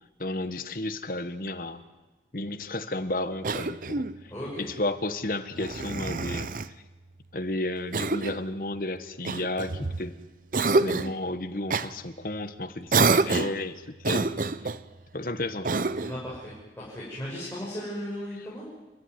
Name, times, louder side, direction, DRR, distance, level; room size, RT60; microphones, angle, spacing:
voice 1, 0.2-1.8 2.3-4.0 4.6-6.5 7.3-10.1 10.8-14.4 15.1-16.0, left 2 dB, 50° left, 10 dB, 1.3 m, -32 dB
Cough, 3.4-4.2 5.6-6.7 7.9-8.5 9.3-10.1 10.5-11.2 11.7-11.9 12.9-13.6 14.0-14.8 15.6-16.2, right 3 dB, 50° right, 0.7 m, -27 dB
voice 2, 4.3-4.7 16.0-18.7, equal, 15° left, -7 dB, 6.4 m, -36 dB
29.5 x 13.5 x 9.8 m, 1.2 s
head